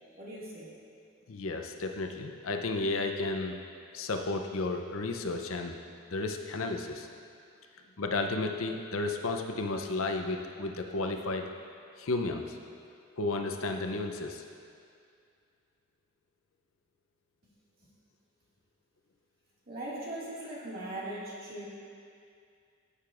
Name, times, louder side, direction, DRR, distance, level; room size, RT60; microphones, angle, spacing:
voice 1, 0.2-0.7 19.7-21.7, right 1 dB, 50° right, -7 dB, 2.1 m, -39 dB
voice 2, 1.3-3.6 3.9-5.8 6.1-7.1 8.0-11.4 12.0-12.6 13.2-14.4, left 3 dB, 75° left, 4 dB, 0.7 m, -33 dB
15.0 x 6.6 x 2.5 m, 2.3 s
head